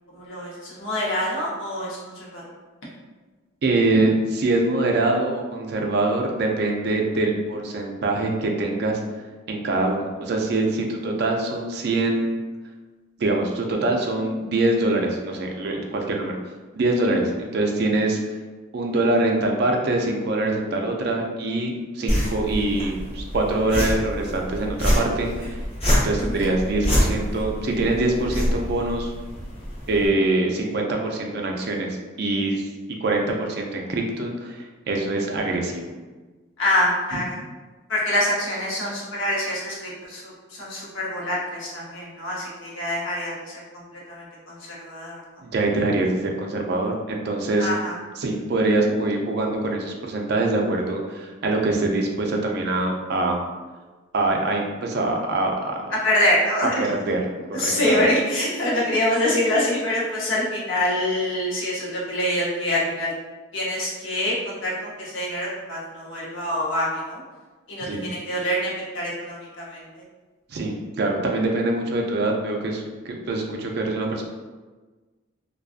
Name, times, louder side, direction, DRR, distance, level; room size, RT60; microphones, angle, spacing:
voice 1, 0.1-2.4 17.0-17.2 26.2-26.5 36.6-37.4 37.9-45.2 47.6-47.9 55.9-56.7 57.5-63.1 63.5-67.2 67.7-70.0, left 1 dB, 75° left, -5 dB, 0.8 m, -25 dB
voice 2, 3.6-9.0 9.5-12.4 13.2-16.3 16.7-18.4 18.7-25.6 26.0-29.1 29.9-32.7 33.0-35.9 45.4-47.7 48.2-53.4 54.1-55.8 56.8-57.2 57.6-58.0 67.9-68.0 70.5-74.2, right 2 dB, 50° right, 1 dB, 0.4 m, -24 dB
sound 1, 22.1-30.1, equal, 30° left, 0.8 m, -26 dB
2.4 x 2.3 x 2.4 m, 1.3 s
head